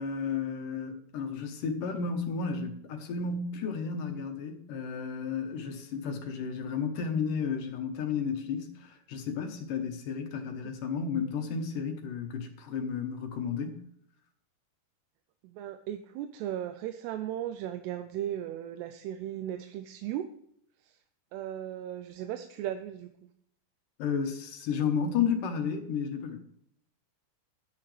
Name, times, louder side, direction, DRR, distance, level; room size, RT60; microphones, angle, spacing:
voice 1, 0.0-13.8 24.0-26.4, left 6 dB, 65° left, 5 dB, 2.5 m, -32 dB
voice 2, 15.4-20.3 20.8-21.0 21.3-23.3, right 11 dB, 80° right, 8 dB, 2.7 m, -36 dB
12.0 x 11.0 x 3.3 m, 0.69 s
omnidirectional pair, 4.9 m